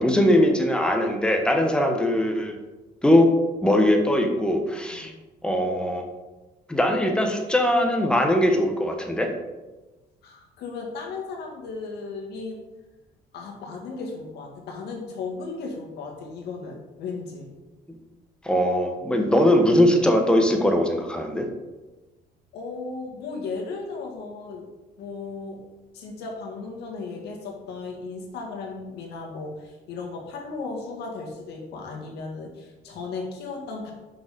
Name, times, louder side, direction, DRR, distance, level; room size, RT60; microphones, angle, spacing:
voice 1, 0.0-2.5 3.0-3.3 3.6-5.1 5.4-6.0 6.7-9.3 18.4-21.5, left 1 dB, 5° left, 3 dB, 1.1 m, -21 dB
voice 2, 10.2-12.6 13.3-17.5 22.5-24.7 25.0-25.6 25.9-33.9, left 4 dB, 75° left, 0 dB, 1.9 m, -35 dB
6.0 x 5.4 x 5.2 m, 1.1 s
cardioid pair, 110°, 17 cm